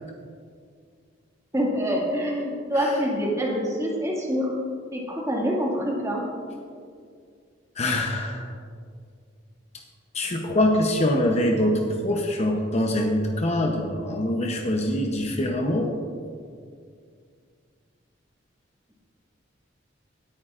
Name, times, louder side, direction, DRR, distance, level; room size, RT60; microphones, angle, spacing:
voice 1, 1.5-4.5 4.9-6.2, equal, 15° right, -3 dB, 2.0 m, -26 dB
voice 2, 7.8-8.5 10.1-15.9, left 1 dB, 35° left, 2 dB, 0.8 m, -24 dB
18.5 x 9.1 x 2.5 m, 2.2 s
head